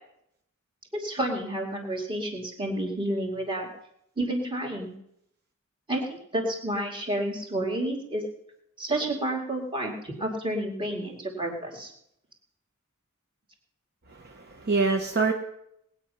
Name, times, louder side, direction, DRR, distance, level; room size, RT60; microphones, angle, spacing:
voice 1, 0.9-3.7 4.2-4.9 5.9-8.2 8.8-11.9, right 1 dB, 25° right, 1 dB, 2.6 m, -30 dB
voice 2, 14.1-15.3, right 4 dB, 50° right, 4 dB, 0.9 m, -25 dB
19.5 x 8.9 x 5.7 m, 0.76 s
head